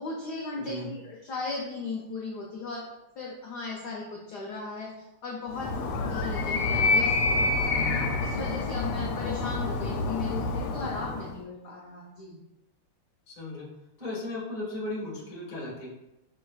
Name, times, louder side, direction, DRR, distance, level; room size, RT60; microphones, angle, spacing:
voice 1, 0.0-2.9 3.2-5.7 6.0-7.9 8.2-12.4, left 3 dB, 70° left, -3 dB, 1.0 m, -37 dB
voice 2, 0.5-0.9 13.3-13.7 14.0-15.9, left 2 dB, 35° left, -4 dB, 0.8 m, -36 dB
Animal, 5.5-11.4, left 3 dB, 90° left, 1.5 m, -27 dB
5.4 x 3.2 x 2.3 m, 0.94 s
omnidirectional pair, 2.4 m